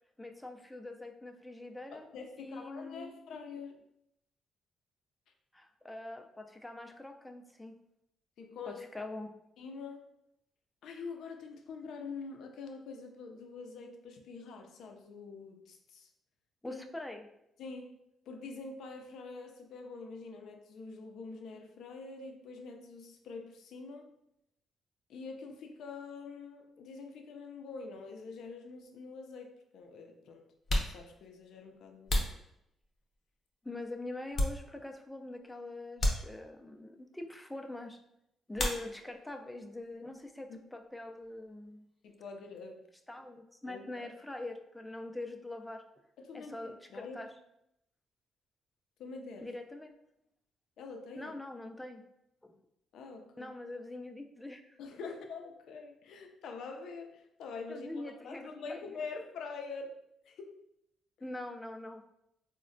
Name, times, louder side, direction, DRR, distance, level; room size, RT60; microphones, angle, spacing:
voice 1, 0.2-2.1 2.4-3.1 5.5-7.8 8.7-9.3 16.6-17.3 33.6-38.0 38.5-41.8 43.1-45.8 46.3-47.3 49.4-50.0 51.2-52.0 52.4-52.6 53.4-54.8 57.7-58.8 61.2-62.0, left 2 dB, 10° left, 5 dB, 0.4 m, -43 dB
voice 2, 1.9-3.8 8.4-9.0 9.6-10.0 10.8-16.1 16.7-16.8 17.6-18.0 18.3-24.1 25.1-30.5 30.8-32.4 40.5-40.6 42.0-42.9 43.7-44.1 46.2-47.3 49.0-49.5 50.8-51.3 52.9-53.5 54.8-60.0 60.3-60.6 61.2-61.3, left 4 dB, 75° left, 4 dB, 0.4 m, -45 dB
sound 1, 28.8-28.9 29.8-29.9 30.5-33.2 33.7-35.1 35.3-35.5 35.9-36.8 38.5-39.3 39.6-40.3 40.5-42.7, left 1 dB, 45° left, 0.7 m, -36 dB
3.9 x 2.1 x 2.5 m, 0.81 s
cardioid pair, 90°, 0 cm